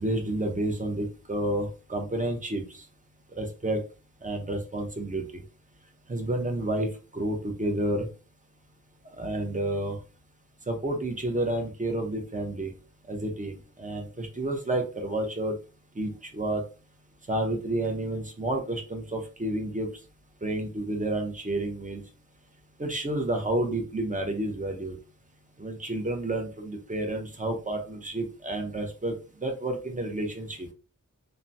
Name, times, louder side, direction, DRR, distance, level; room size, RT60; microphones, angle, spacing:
voice 1, 0.0-2.6 3.4-3.8 4.2-5.4 6.1-8.1 9.2-10.0 10.7-12.7 13.1-15.5 16.0-16.6 17.3-19.9 20.4-22.0 22.8-25.0 25.6-29.1 29.4-30.7, right 1 dB, 25° right, 3 dB, 0.7 m, -30 dB
2.9 x 2.2 x 2.6 m, 0.34 s
wide cardioid pair, 75°, 33 cm